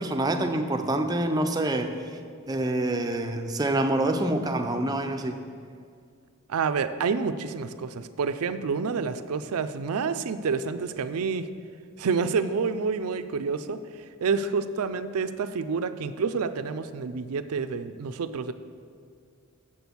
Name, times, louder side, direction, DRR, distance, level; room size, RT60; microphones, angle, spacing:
voice 1, 0.0-2.1 2.5-5.4, right 1 dB, 15° right, 5 dB, 0.4 m, -26 dB
voice 2, 6.5-11.5 12.0-13.8 14.2-18.5, right 5 dB, 80° right, 11 dB, 0.4 m, -28 dB
7.4 x 6.1 x 7.0 m, 2.2 s
head